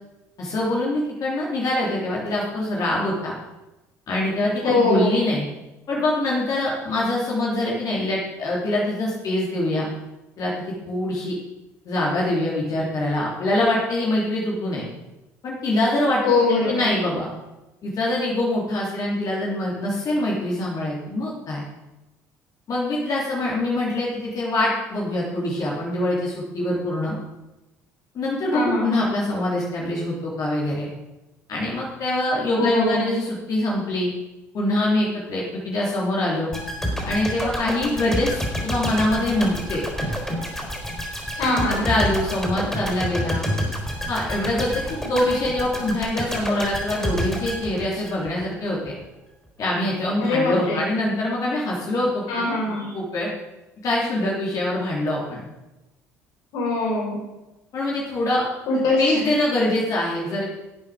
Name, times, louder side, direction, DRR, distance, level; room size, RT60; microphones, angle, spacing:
voice 1, 0.4-3.3 4.1-5.4 5.9-9.9 10.4-10.5 10.9-11.4 11.8-14.8 15.4-16.2 16.5-17.3 17.8-21.6 22.7-27.2 28.1-30.9 31.5-34.1 34.5-36.5 37.0-39.8 41.7-43.5 44.1-49.0 49.6-52.2 52.9-53.3 53.8-55.4 57.7-58.5 59.0-60.4, left 1 dB, 55° left, -4 dB, 3.4 m, -24 dB
voice 2, 4.6-5.1 16.2-16.9 28.5-29.0 32.6-33.1 41.4-41.9 50.2-50.9 52.3-53.0 56.5-57.2 58.7-59.3, left 3 dB, 70° left, -2 dB, 4.8 m, -22 dB
sound 1, 36.5-48.5 48.8-49.0, equal, 5° left, 4.2 m, -29 dB
12.5 x 8.3 x 5.1 m, 1.0 s
hypercardioid pair, 65°, 7 cm